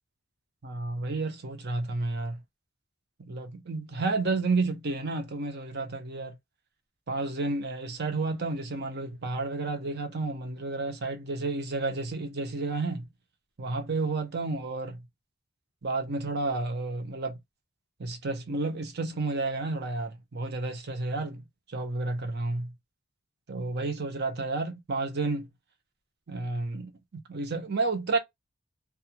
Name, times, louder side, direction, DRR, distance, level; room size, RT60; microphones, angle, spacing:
voice 1, 0.6-2.4 3.2-6.4 7.1-13.1 13.6-15.1 15.8-17.4 18.0-22.7 23.5-25.5 26.3-28.2, right 3 dB, 50° right, 0.7 m, -31 dB
2.4 x 2.3 x 2.8 m
head